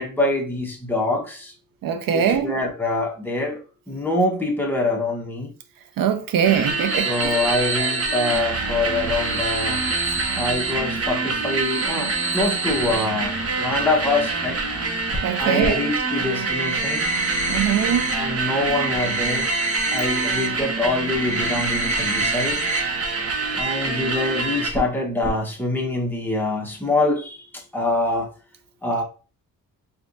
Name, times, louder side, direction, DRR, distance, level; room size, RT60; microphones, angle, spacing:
voice 1, 0.0-1.5 2.1-3.6 3.9-5.5 7.0-9.8 10.3-14.6 15.4-17.0 18.1-19.5 19.9-22.7 23.6-28.3 28.8-29.0, left 2 dB, 5° left, 1.2 m, -25 dB
voice 2, 1.8-2.5 6.0-7.4 15.2-15.8 17.5-18.1, right 8 dB, 70° right, 0.8 m, -22 dB
sound 1, 6.4-24.7, right 4 dB, 45° right, 1.0 m, -26 dB
sound 2, 6.7-8.4 9.0-10.7 11.3-13.0 15.1-15.2 15.6-15.7 16.1-18.1 18.4-20.5 20.8-22.8 23.1-23.2 23.6-23.7 24.7-24.9 25.2-25.3, right 2 dB, 20° right, 1.1 m, -28 dB
4.2 x 3.3 x 2.7 m
cardioid pair, 95°, 35 cm